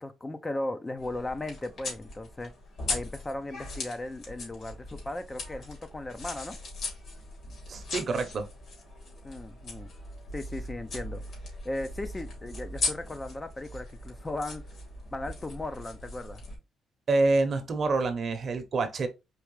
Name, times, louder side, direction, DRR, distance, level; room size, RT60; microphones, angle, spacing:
voice 1, 0.0-2.5 2.9-6.6 9.2-9.9 10.3-11.2 11.6-14.6 15.1-16.4, left 2 dB, 20° left, 0.5 m, -37 dB
sound 1, 1.0-16.6, left 2 dB, 60° left, 2.8 m, -39 dB
voice 2, 7.7-8.5 17.1-19.1, right 3 dB, 50° right, 0.8 m, -27 dB
4.7 x 3.1 x 3.1 m
cardioid pair, 90°, 0 cm